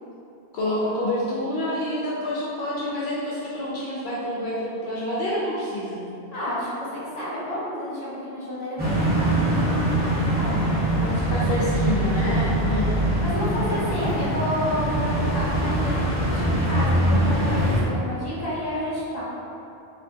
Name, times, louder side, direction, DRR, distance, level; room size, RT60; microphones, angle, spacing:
voice 1, 0.5-6.0 11.0-12.9 13.6-13.8, left 1 dB, 80° left, -6 dB, 0.9 m, -28 dB
voice 2, 6.3-10.6 12.2-12.5 13.2-15.9 16.2-19.2, equal, 40° left, -9 dB, 1.3 m, -30 dB
sound 1, 8.8-17.8, right 1 dB, 10° right, 1.2 m, -23 dB
4.3 x 2.8 x 2.8 m, 2.7 s
omnidirectional pair, 1.1 m